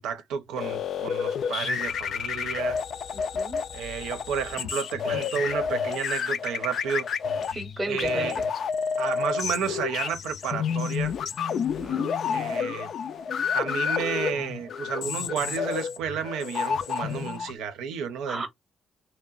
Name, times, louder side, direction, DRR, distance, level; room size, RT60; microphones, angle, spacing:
voice 1, 0.0-2.8 3.7-7.1 7.9-8.4 9.0-11.1 12.3-12.9 13.5-18.5, right 7 dB, 90° right, 0.7 m, -31 dB
sound 1, 0.6-17.5, left 7 dB, 60° left, 0.3 m, -30 dB
voice 2, 3.1-3.6 7.5-8.3 11.5-12.1 18.3-18.5, right 1 dB, 20° right, 0.7 m, -34 dB
2.8 x 2.1 x 2.4 m
cardioid pair, 90°, 0 cm